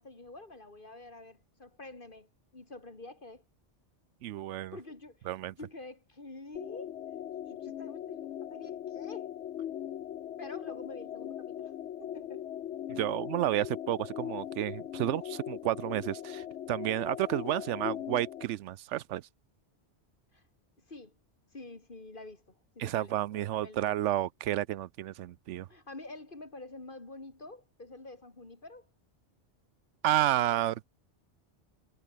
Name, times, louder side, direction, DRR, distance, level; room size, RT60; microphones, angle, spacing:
voice 1, 0.0-3.4 4.7-5.3 5.6-7.0 7.5-9.3 10.4-11.7 12.0-12.5 20.3-20.4 20.8-21.2 21.5-24.0 25.7-28.9 30.1-30.8, left 2 dB, 45° left, 2.9 m, -48 dB
voice 2, 4.2-4.8 5.3-5.5 12.9-19.2 22.8-25.7 30.0-30.8, right 13 dB, 85° right, 0.9 m, -31 dB
sound 1, 6.5-18.4, left 10 dB, 75° left, 1.0 m, -40 dB
omnidirectional pair, 1.2 m